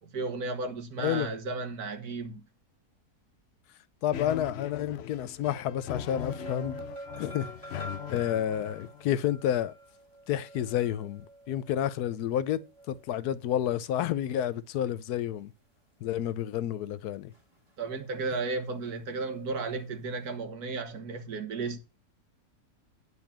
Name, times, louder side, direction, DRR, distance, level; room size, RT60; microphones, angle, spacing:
voice 1, 0.0-2.4 17.8-21.8, right 3 dB, 80° right, 1.9 m, -34 dB
voice 2, 1.0-1.3 4.0-6.8 7.1-7.5 8.1-9.7 10.3-12.6 12.9-15.5 16.0-17.3, left 11 dB, 85° left, 1.2 m, -30 dB
sound 1, 4.1-9.2, left 10 dB, 60° left, 0.7 m, -40 dB
sound 2, 6.1-13.4 17.3-17.7 18.0-18.1, right 1 dB, 25° right, 2.3 m, -47 dB
9.7 x 4.1 x 7.3 m
omnidirectional pair, 1.6 m